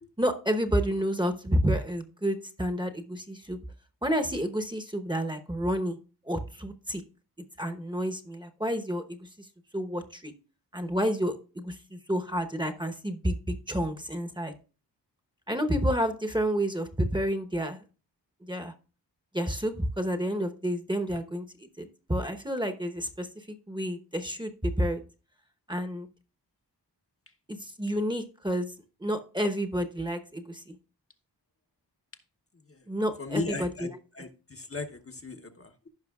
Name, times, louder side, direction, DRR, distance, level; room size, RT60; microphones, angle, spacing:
voice 1, 0.2-3.6 4.0-6.0 6.2-7.0 7.6-9.5 9.7-10.3 10.7-14.5 15.5-17.8 18.4-18.7 19.3-25.0 25.7-26.1 27.5-28.7 29.0-30.8 32.9-33.9, equal, 10° right, 6 dB, 0.9 m, -30 dB
voice 2, 33.2-35.9, left 3 dB, 35° left, 5 dB, 0.8 m, -37 dB
15.0 x 5.5 x 2.3 m, 0.35 s
wide cardioid pair, 85°, 41 cm